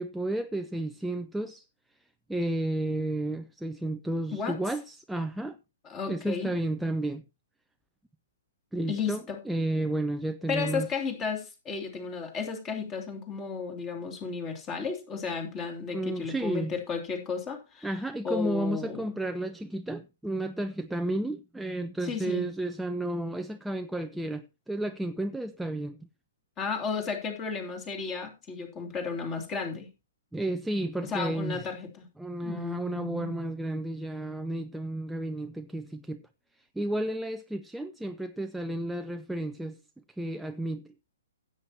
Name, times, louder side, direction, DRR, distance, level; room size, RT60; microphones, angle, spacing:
voice 1, 0.0-1.6 2.3-5.6 6.1-7.2 8.7-10.9 15.9-16.7 17.8-26.1 30.3-31.7 32.2-36.2 36.8-39.8 40.2-40.9, right 1 dB, 5° right, 0.5 m, -32 dB
voice 2, 5.8-6.5 8.9-9.4 10.5-17.9 18.2-19.2 22.0-22.5 26.6-29.9 31.0-32.1 32.4-33.3, left 5 dB, 20° left, 2.9 m, -33 dB
16.0 x 8.7 x 2.9 m
figure-of-eight pair, 120°, 0 cm